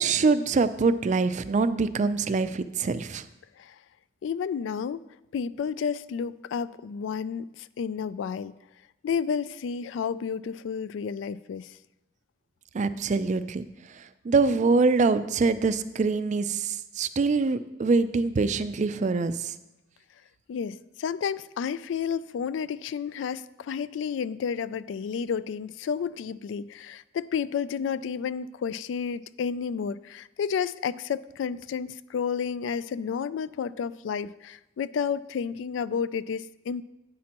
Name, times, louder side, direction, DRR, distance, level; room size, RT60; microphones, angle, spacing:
voice 1, 0.0-3.2 12.7-13.7 14.0-19.5, right 4 dB, 40° right, 13 dB, 0.4 m, -24 dB
voice 2, 4.2-5.0 5.3-8.5 9.0-11.8 20.5-36.8, left 6 dB, 75° left, 17 dB, 0.3 m, -31 dB
10.5 x 8.5 x 2.9 m, 0.94 s
head